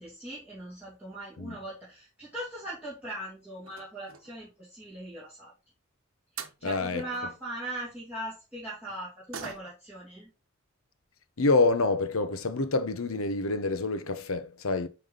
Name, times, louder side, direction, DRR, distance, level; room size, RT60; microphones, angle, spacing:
voice 1, 0.0-5.5 6.3-10.3, right 1 dB, 5° right, 2.6 m, -40 dB
sound 1, 2.7-3.0 3.6-4.5 6.0-6.1 6.4-6.6 9.3-10.0 10.3-10.4 10.8-11.0 11.8-11.9 12.2-12.3 12.7-13.0 13.3-13.4 13.7-13.8, right 6 dB, 80° right, 1.1 m, -44 dB
voice 2, 6.6-7.0 11.4-14.9, left 3 dB, 85° left, 0.9 m, -27 dB
9.2 x 3.5 x 3.9 m
head